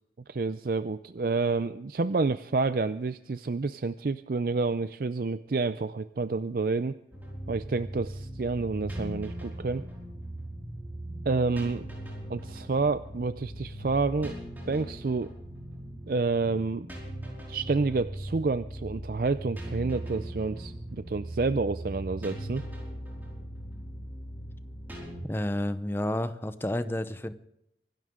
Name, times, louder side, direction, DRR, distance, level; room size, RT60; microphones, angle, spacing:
voice 1, 0.3-7.0 7.5-9.8 11.3-11.9 12.3-14.4 14.7-15.3 16.1-16.9 17.5-22.6, right 3 dB, 55° right, 12 dB, 0.5 m, -29 dB
sound 1, 7.1-25.2, right 1 dB, 10° right, 4.8 m, -39 dB
voice 2, 25.3-27.3, left 1 dB, 15° left, 11 dB, 0.8 m, -30 dB
25.0 x 12.0 x 3.7 m, 0.82 s
head